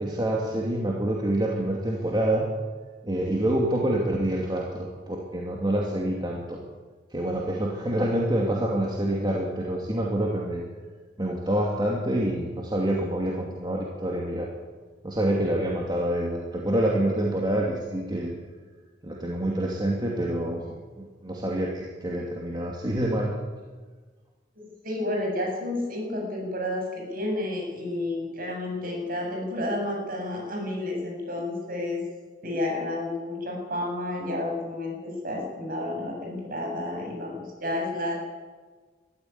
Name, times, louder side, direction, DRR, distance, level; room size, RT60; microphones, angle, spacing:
voice 1, 0.0-2.5 3.0-6.6 7.1-10.6 11.2-14.5 15.0-18.3 19.0-23.4, right 1 dB, 25° right, -1 dB, 2.5 m, -27 dB
voice 2, 24.5-32.0 32.4-38.2, left 1 dB, 50° right, 0 dB, 7.8 m, -31 dB
22.0 x 14.0 x 9.6 m, 1.4 s
head